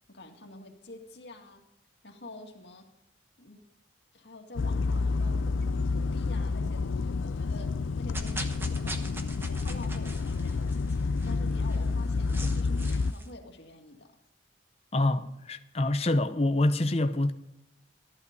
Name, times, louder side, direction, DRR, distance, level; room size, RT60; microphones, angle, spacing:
voice 1, 0.1-1.6 2.0-2.9 3.4-3.6 4.1-14.2, left 2 dB, 60° left, 2.1 m, -48 dB
sound 1, 4.6-13.1, left 4 dB, 80° left, 0.4 m, -29 dB
sound 2, 8.1-13.3, right 1 dB, 10° right, 1.0 m, -43 dB
voice 2, 14.9-17.3, left 1 dB, 30° left, 0.7 m, -26 dB
14.5 x 11.0 x 5.3 m
head